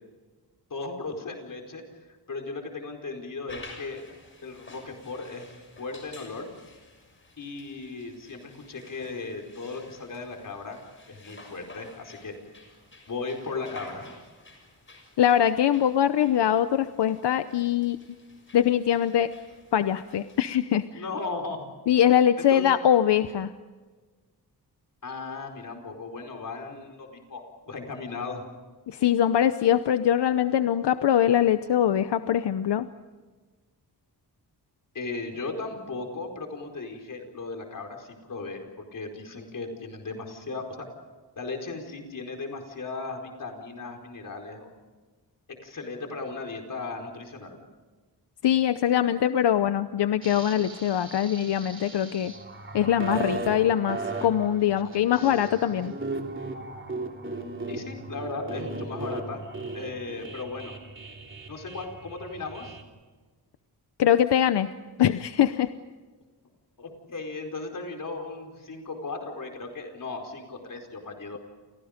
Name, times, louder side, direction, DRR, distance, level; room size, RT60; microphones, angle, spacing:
voice 1, 0.7-1.8 2.3-4.0 4.4-5.5 5.8-6.5 7.4-10.8 11.1-12.3 13.1-14.0 20.9-21.7 22.4-22.7 25.0-28.4 34.9-40.9 41.4-44.7 45.6-47.6 57.7-59.4 59.7-60.7 61.5-62.8 66.8-71.4, left 3 dB, 50° left, 3 dB, 4.7 m, -36 dB
sound 1, 3.5-20.6, left 2 dB, 30° left, 6.5 m, -51 dB
voice 2, 15.2-18.0 18.5-19.3 19.7-21.0 21.9-23.5 28.9-32.9 48.4-52.3 52.7-55.9 64.0-64.7 65.0-65.7, left 10 dB, 85° left, 11 dB, 0.9 m, -22 dB
sound 2, 50.2-62.8, right 3 dB, 30° right, 3.1 m, -37 dB
30.0 x 29.0 x 5.2 m, 1.3 s
wide cardioid pair, 155°, 40 cm